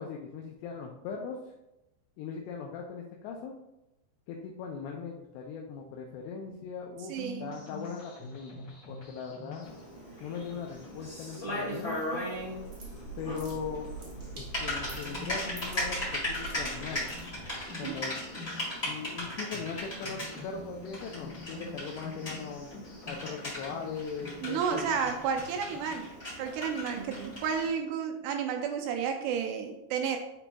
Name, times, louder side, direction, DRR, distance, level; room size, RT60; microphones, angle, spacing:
voice 1, 0.0-1.4 2.2-3.5 4.3-9.7 10.2-12.3 13.2-13.9 14.4-17.1 17.8-18.2 18.8-22.7 23.1-24.9, left 6 dB, 80° left, 0 dB, 2.6 m, -39 dB
sound 1, 7.1-26.0, left 2 dB, 65° left, 1.2 m, -48 dB
voice 2, 7.1-7.5 17.8-18.0 24.4-26.1 26.4-30.2, right 7 dB, 80° right, 4 dB, 2.5 m, -32 dB
Typing, 9.6-27.7, left 1 dB, 35° left, 1.0 m, -38 dB
sound 2, 12.3-17.7, right 4 dB, 60° right, 1.3 m, -44 dB
9.8 x 4.2 x 2.3 m, 0.91 s
omnidirectional pair, 5.0 m